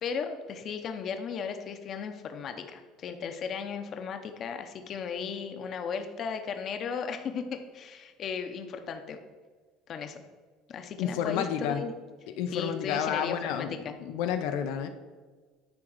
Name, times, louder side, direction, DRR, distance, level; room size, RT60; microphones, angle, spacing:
voice 1, 0.0-9.2 9.9-10.2 10.7-11.9 12.5-13.9, left 6 dB, 40° left, 7 dB, 0.8 m, -36 dB
voice 2, 11.0-11.8 12.4-14.9, left 8 dB, 75° left, 7 dB, 0.6 m, -30 dB
9.6 x 3.7 x 6.4 m, 1.4 s
cardioid pair, 145°, 0 cm